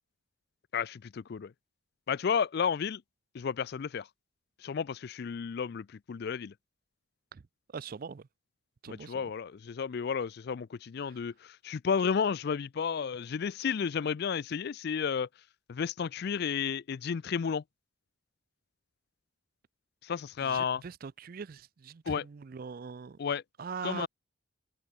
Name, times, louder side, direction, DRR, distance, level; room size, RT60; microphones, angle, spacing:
voice 1, 0.7-1.5 2.1-3.0 3.3-4.1 4.6-6.5 8.9-15.3 15.7-17.6 20.0-20.8 22.1-22.2 23.2-23.4 23.8-24.1, left 6 dB, 50° left, 0.3 m, -32 dB
voice 2, 7.7-8.3 8.8-9.3 11.1-11.2 20.4-23.2 23.6-24.1, right 5 dB, 45° right, 0.4 m, -42 dB
head